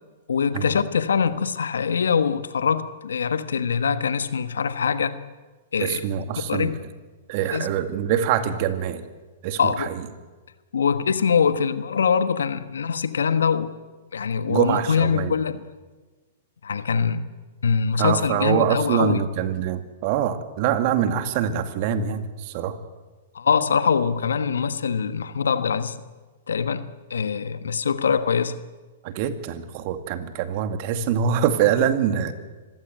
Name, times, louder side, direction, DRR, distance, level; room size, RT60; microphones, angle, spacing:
voice 1, 0.3-5.2 5.7-6.0 6.5-6.8 7.5-7.7 9.6-9.9 10.7-13.7 14.1-15.6 16.6-17.3 17.6-19.2 23.3-26.0 26.5-28.6, left 6 dB, 80° left, 12 dB, 1.3 m, -23 dB
voice 2, 5.8-6.7 7.3-9.0 9.4-10.1 14.5-15.3 18.0-22.8 29.0-32.3, right 9 dB, 50° right, 9 dB, 2.1 m, -24 dB
25.0 x 15.5 x 9.3 m, 1.3 s
hypercardioid pair, 115°, 0 cm